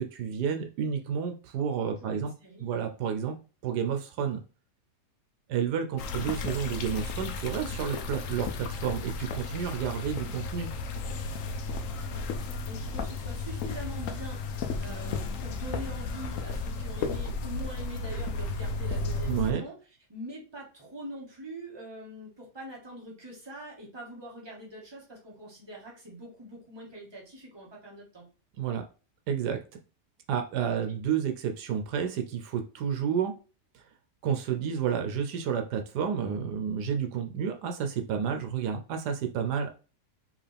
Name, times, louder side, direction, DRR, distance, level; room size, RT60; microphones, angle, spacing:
voice 1, 0.0-2.3 2.6-3.4 3.6-4.4 5.5-10.7 19.3-19.6 28.6-28.8 29.3-29.6 30.3-33.3 33.7-33.8 34.2-39.7, right 7 dB, 80° right, 6 dB, 1.2 m, -30 dB
voice 2, 2.0-2.9 12.0-12.3 12.6-19.7 20.1-28.3 30.7-31.0, right 1 dB, 15° right, -3 dB, 1.5 m, -44 dB
sound 1, 6.0-19.5, left 3 dB, 65° left, 0.9 m, -34 dB
4.9 x 3.1 x 3.4 m, 0.34 s
omnidirectional pair, 1.8 m